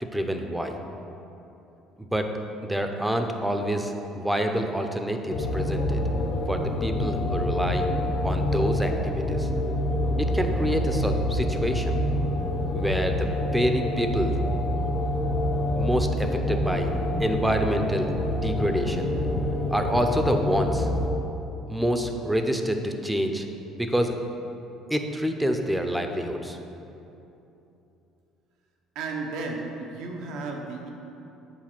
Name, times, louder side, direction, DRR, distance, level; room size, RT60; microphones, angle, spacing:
voice 1, 0.0-0.8 2.0-2.3 2.6-6.0 6.5-7.9 8.2-9.5 10.2-12.0 12.7-14.3 15.8-16.9 17.2-18.1 18.4-19.1 19.7-20.9 21.7-23.5 23.7-24.1 24.9-26.6, equal, 5° right, 5 dB, 0.6 m, -27 dB
sound 1, 5.3-21.1, left 1 dB, 60° left, 1.1 m, -26 dB
voice 2, 28.9-30.9, right 3 dB, 75° right, 1 dB, 1.0 m, -33 dB
7.4 x 4.1 x 6.0 m, 3.0 s
cardioid pair, 100°, 0 cm